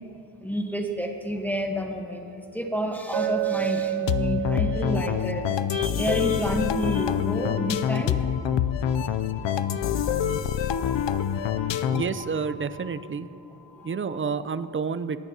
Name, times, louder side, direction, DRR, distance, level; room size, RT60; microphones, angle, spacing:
voice 1, 0.4-2.2 2.5-5.4 5.7-8.2 10.7-10.8, equal, 5° left, 2 dB, 1.1 m, -29 dB
Chink clink, 3.1-7.1, right 15 dB, 85° right, 0.6 m, -31 dB
sound 1, 4.1-12.2, left 9 dB, 75° left, 0.6 m, -26 dB
sound 2, 6.0-14.5, left 1 dB, 65° right, 2.3 m, -45 dB
voice 2, 11.9-13.3 13.8-15.2, right 5 dB, 30° right, 13 dB, 0.4 m, -29 dB
21.0 x 16.0 x 2.8 m, 2.6 s
wide cardioid pair, 135°, 44 cm